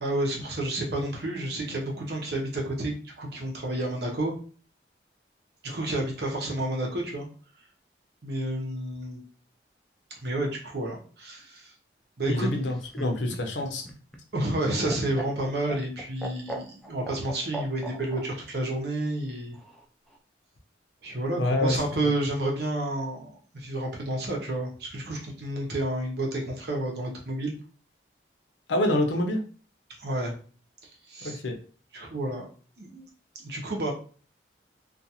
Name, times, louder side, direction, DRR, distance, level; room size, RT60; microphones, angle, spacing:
voice 1, 0.0-4.3 5.6-7.3 8.2-9.2 10.2-11.7 12.2-12.5 14.3-19.5 21.0-27.5 30.0-30.3 31.1-31.4 31.9-32.5 32.8-33.1 33.4-33.9, right 1 dB, 60° right, 0 dB, 0.8 m, -30 dB
voice 2, 12.2-13.8 21.4-21.8 28.7-29.4 31.2-31.6, left 1 dB, 85° left, 3 dB, 0.6 m, -26 dB
Laughter, 12.6-18.2 19.5-20.2, right 1 dB, 5° left, 0.3 m, -38 dB
2.5 x 2.3 x 2.8 m, 0.41 s
head